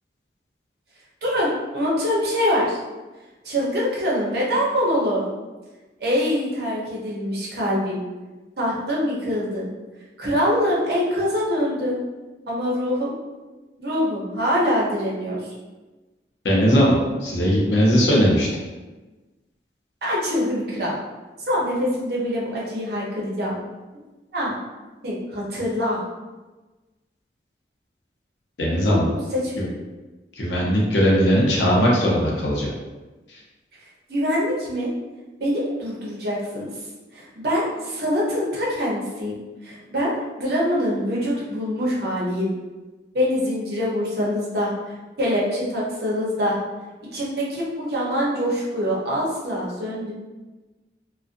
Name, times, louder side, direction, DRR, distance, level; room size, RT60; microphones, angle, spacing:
voice 1, 1.2-2.8 3.4-5.3 6.0-8.0 8.6-9.7 10.2-12.0 12.5-13.1 13.8-15.4 20.0-20.9 21.5-23.5 24.3-24.5 25.0-26.0 28.9-29.0 29.3-29.5 34.1-34.9 35.4-36.7 37.1-40.1 40.4-42.5 43.1-46.6 47.1-50.1, equal, 60° right, -5 dB, 0.7 m, -24 dB
voice 2, 16.4-18.5 28.6-29.1 29.6-29.7 30.4-32.7 33.3-33.4, equal, 75° left, -3 dB, 0.7 m, -19 dB
2.4 x 2.1 x 2.5 m, 1.2 s
head